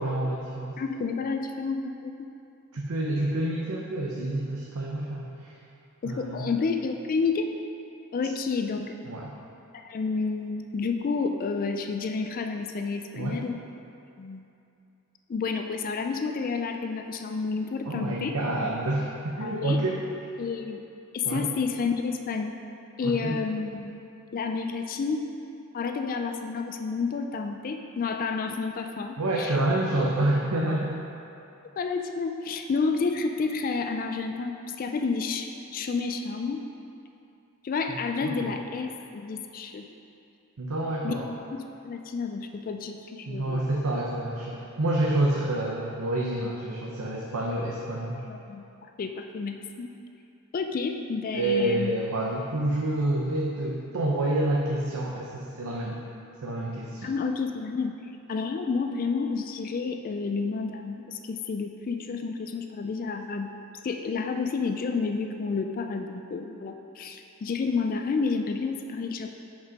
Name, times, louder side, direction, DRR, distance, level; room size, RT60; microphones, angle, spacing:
voice 1, 0.0-0.8 2.7-5.5 6.0-6.4 9.1-9.3 13.1-13.4 17.9-20.0 21.2-21.5 23.0-23.4 29.2-30.9 37.9-38.5 40.6-41.3 43.3-48.2 51.3-56.0 56.4-57.1, right 1 dB, 90° right, -3 dB, 0.7 m, -28 dB
voice 2, 0.8-2.3 6.0-7.5 8.1-8.9 9.7-13.6 14.2-14.5 15.3-18.4 19.4-19.8 20.4-20.8 21.1-22.5 23.0-23.9 24.3-25.3 25.7-29.6 31.8-36.6 37.6-39.9 41.0-41.1 41.5-43.6 48.3-48.6 49.0-49.9 50.5-51.9 57.0-57.9 58.3-63.5 63.8-69.3, left 4 dB, 40° left, 5 dB, 0.3 m, -30 dB
6.1 x 5.2 x 5.2 m, 2.7 s
head